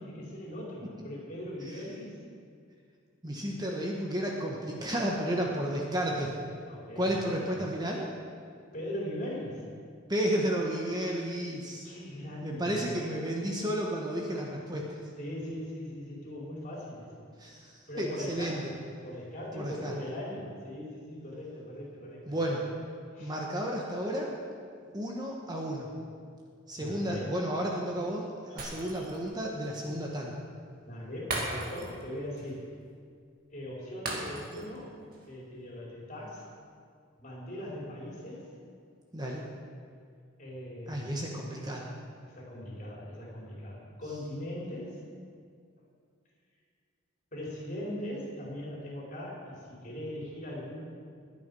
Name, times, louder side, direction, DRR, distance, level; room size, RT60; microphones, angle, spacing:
voice 1, 0.0-2.2 6.7-7.6 8.7-9.6 11.8-13.0 15.2-17.1 17.9-18.8 19.0-22.5 23.1-23.3 26.7-27.4 28.5-29.0 30.8-32.6 33.5-35.0 35.3-36.4 37.2-38.5 40.4-41.1 42.2-45.0 47.3-50.8, left 1 dB, 40° left, -4 dB, 4.6 m, -40 dB
voice 2, 3.2-6.3 6.9-8.0 10.1-11.9 12.4-15.0 17.4-17.7 18.0-18.6 19.5-20.0 22.3-22.6 23.2-24.3 24.9-25.9 26.7-30.3 39.1-39.4 40.9-41.9, equal, 20° right, -1 dB, 1.3 m, -32 dB
Shatter, 28.6-29.3 29.6-29.8 31.3-32.1 32.4-32.5 34.1-34.8 35.1-35.3, right 2 dB, 45° right, 2.3 m, -36 dB
21.0 x 8.7 x 5.5 m, 2.2 s
head